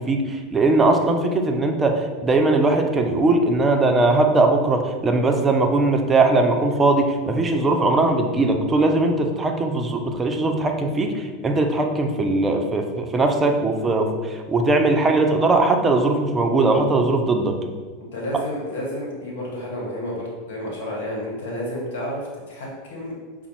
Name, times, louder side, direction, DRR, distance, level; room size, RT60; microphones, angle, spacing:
voice 1, 0.0-17.6, right 2 dB, 20° right, 4 dB, 0.5 m, -20 dB
voice 2, 18.1-23.1, left 1 dB, 70° left, -2 dB, 1.1 m, -30 dB
4.9 x 2.0 x 3.0 m, 1.5 s
hypercardioid pair, 90°, 0 cm